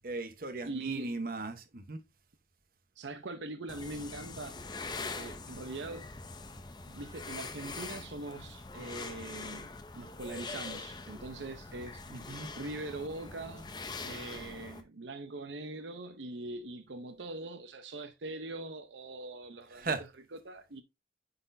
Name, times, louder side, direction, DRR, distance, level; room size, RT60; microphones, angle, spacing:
voice 1, 0.0-2.0 12.1-12.5 19.7-20.0, right 3 dB, 50° right, 1.0 m, -37 dB
voice 2, 0.6-1.2 3.0-4.7 5.0-6.1 6.9-9.7 9.9-12.0 12.5-19.9 20.4-20.8, right 2 dB, 80° right, 0.7 m, -42 dB
sound 1, 3.7-14.8, left 3 dB, 25° left, 0.6 m, -43 dB
9.5 x 4.1 x 2.6 m
head